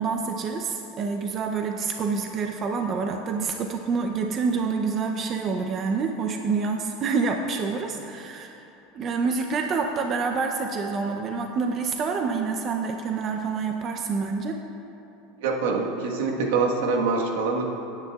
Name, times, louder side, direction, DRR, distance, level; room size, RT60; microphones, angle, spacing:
voice 1, 0.0-8.5 8.9-14.6, right 4 dB, 35° right, 4 dB, 0.6 m, -27 dB
voice 2, 15.4-17.6, right 4 dB, 75° right, 0 dB, 1.4 m, -24 dB
17.0 x 9.8 x 2.4 m, 2.9 s
supercardioid pair, 135°, 0 cm